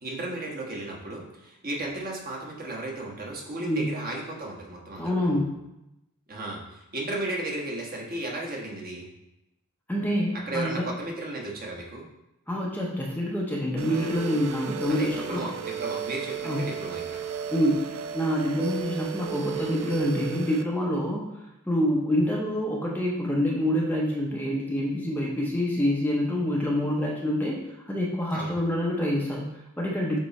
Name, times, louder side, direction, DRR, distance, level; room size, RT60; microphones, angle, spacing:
voice 1, 0.0-5.4 6.3-9.1 10.4-12.1 14.9-17.2 28.3-28.6, right 2 dB, 40° right, -2 dB, 1.3 m, -34 dB
voice 2, 3.6-3.9 5.0-5.5 9.9-10.9 12.5-15.4 16.4-16.6 17.5-17.9 18.1-21.3 21.7-27.6 27.9-30.2, equal, 10° left, -2 dB, 0.6 m, -26 dB
sound 1, 13.8-20.6, right 7 dB, 65° right, 0.5 m, -34 dB
7.7 x 3.0 x 4.1 m, 0.91 s
head